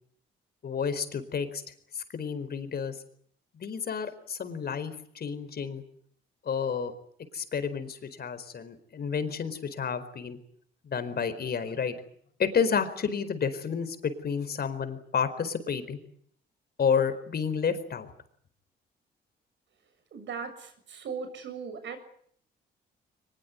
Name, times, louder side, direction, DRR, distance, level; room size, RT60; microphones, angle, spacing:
voice 1, 0.6-1.6 1.9-3.0 3.5-5.8 6.4-6.9 7.3-10.4 10.8-12.0 12.4-16.0 16.8-18.1, left 6 dB, 50° left, 11 dB, 4.5 m, -30 dB
voice 2, 20.1-22.0, right 6 dB, 70° right, 9 dB, 7.1 m, -38 dB
23.0 x 21.5 x 9.6 m, 0.64 s
cardioid pair, 90°, 20 cm